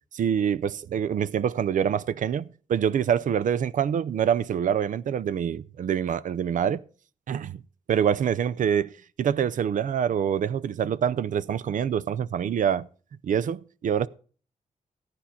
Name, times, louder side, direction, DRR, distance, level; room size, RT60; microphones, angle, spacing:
voice 1, 0.1-6.8 7.3-7.6 7.9-8.9 9.2-12.9 13.2-14.1, right 8 dB, 70° right, 0.5 m, -25 dB
14.5 x 9.7 x 4.3 m
wide cardioid pair, 145°, 14 cm